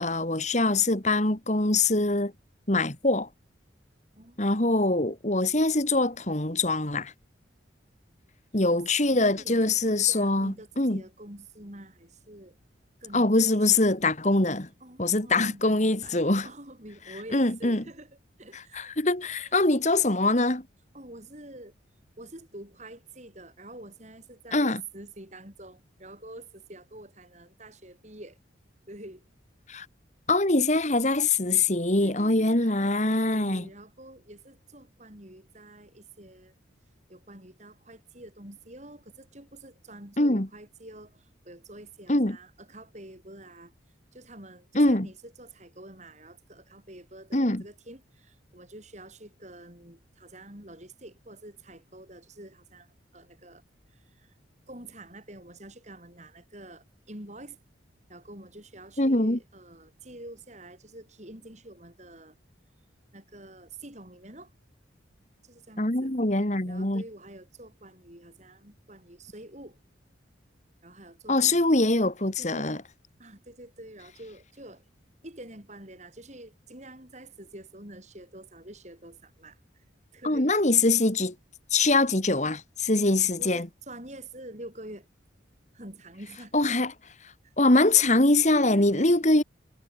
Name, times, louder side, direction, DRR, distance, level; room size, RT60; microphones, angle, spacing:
voice 1, 0.0-2.3 2.7-3.3 4.4-7.1 8.5-11.0 13.1-14.7 15.0-16.5 17.3-17.8 18.5-20.6 24.5-24.8 29.7-29.9 30.3-33.6 40.2-40.5 42.1-42.4 44.7-45.1 47.3-47.6 59.0-59.4 65.8-67.0 71.3-72.8 80.2-81.3 81.7-83.7 86.5-86.9 87.6-89.4, left 2 dB, 35° left, 2.3 m, -23 dB
voice 2, 8.8-12.6 13.0-13.7 14.8-19.0 19.3-19.5 20.9-21.7 22.2-28.4 28.9-29.2 32.0-36.5 37.1-43.7 44.1-53.6 53.9-54.3 54.7-57.6 58.1-62.3 63.1-64.5 65.4-66.1 66.6-69.8 70.8-71.9 72.4-72.7 73.2-74.8 75.2-79.8 80.1-80.5 83.4-85.1 85.7-86.5 87.4-87.5 88.5-89.2, right 1 dB, 35° right, 6.6 m, -47 dB
head